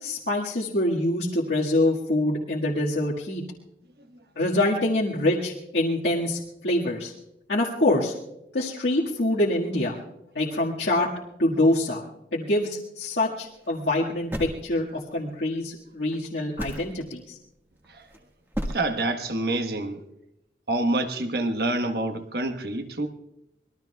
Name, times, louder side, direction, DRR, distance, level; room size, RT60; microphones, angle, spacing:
voice 1, 0.0-3.4 4.4-7.1 7.5-8.1 8.5-10.0 10.4-11.1 11.4-12.0 12.3-17.4, left 1 dB, 85° left, 1.8 m, -25 dB
sound 1, 13.5-13.8 14.3-15.2 16.1-16.2 16.6-17.0 17.8-18.2 18.5-18.8, equal, 15° right, 1.6 m, -32 dB
voice 2, 18.7-20.0 20.7-23.1, right 2 dB, 60° right, 1.2 m, -27 dB
25.5 x 20.5 x 2.3 m
head